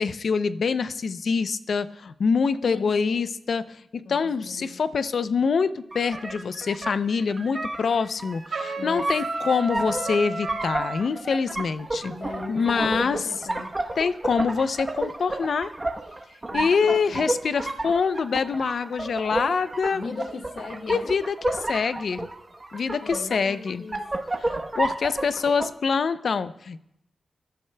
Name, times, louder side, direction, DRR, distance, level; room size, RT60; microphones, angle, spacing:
voice 1, 0.0-12.1 12.5-13.2 14.0-15.7 16.5-20.0 20.9-22.3 22.7-23.8 24.4-26.8, left 5 dB, 65° left, 13 dB, 0.5 m, -25 dB
voice 2, 2.6-3.2 4.0-4.8 8.8-9.1 12.0-13.7 16.5-17.3 19.9-21.1 23.0-24.1, left 3 dB, 85° left, 4 dB, 1.3 m, -38 dB
sound 1, 5.9-25.7, right 2 dB, 20° right, 1.0 m, -31 dB
Trumpet, 8.5-11.0, right 3 dB, 75° right, 2.7 m, -32 dB
24.5 x 12.0 x 2.2 m, 0.76 s
wide cardioid pair, 160°, 0 cm